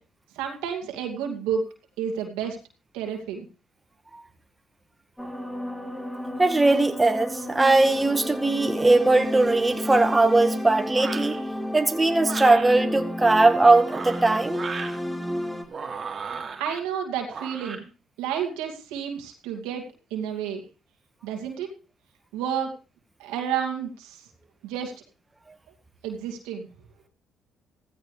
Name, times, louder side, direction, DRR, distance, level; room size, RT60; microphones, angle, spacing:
voice 1, 0.3-1.6 2.0-2.6 2.9-3.5 16.6-17.9 18.2-19.8 20.1-20.6 21.2-21.7 22.3-22.7 23.2-24.3 24.6-24.9 26.0-26.7, right 8 dB, 85° right, 2.4 m, -30 dB
sound 1, 5.2-15.6, left 1 dB, 5° left, 3.2 m, -32 dB
voice 2, 6.4-11.4 11.7-14.6, right 2 dB, 15° right, 1.9 m, -20 dB
sound 2, 10.9-11.4 12.2-12.7 13.7-15.0 15.7-16.8 17.3-17.8, right 5 dB, 45° right, 2.8 m, -35 dB
16.0 x 15.0 x 3.4 m
supercardioid pair, 60°, 0 cm